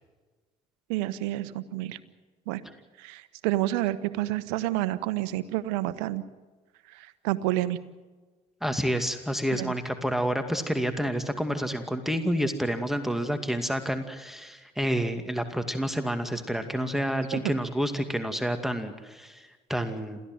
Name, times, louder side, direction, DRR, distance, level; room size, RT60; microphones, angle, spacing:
voice 1, 0.9-2.0 2.5-2.6 3.0-6.2 6.9-7.8 9.5-9.7 17.3-17.4, right 15 dB, 75° right, 14 dB, 1.2 m, -29 dB
voice 2, 8.6-20.2, equal, ahead, 7 dB, 2.3 m, -29 dB
28.0 x 15.0 x 7.9 m, 1.3 s
hypercardioid pair, 60°, 20 cm